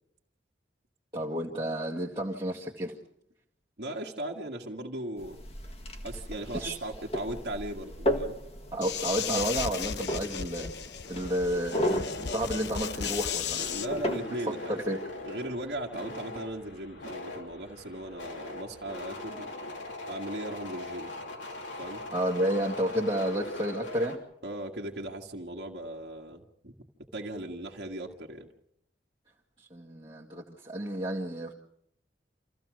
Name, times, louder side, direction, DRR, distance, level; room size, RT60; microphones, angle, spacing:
voice 1, 1.1-3.0 6.5-6.8 8.7-10.7 11.1-13.7 14.7-15.0 22.1-24.2 29.6-31.5, equal, 25° right, -4 dB, 1.8 m, -31 dB
voice 2, 3.8-5.4 6.0-8.4 13.7-14.8 15.3-19.5 20.1-21.1 21.8-22.0 24.4-26.7 27.1-28.5, right 1 dB, 60° right, -1 dB, 1.8 m, -38 dB
sound 1, 5.2-14.2, equal, 30° left, 1.7 m, -35 dB
sound 2, 8.8-13.9, left 7 dB, 65° left, 0.9 m, -35 dB
sound 3, 11.0-24.2, left 2 dB, 85° left, 3.4 m, -41 dB
27.5 x 15.0 x 6.3 m, 0.74 s
head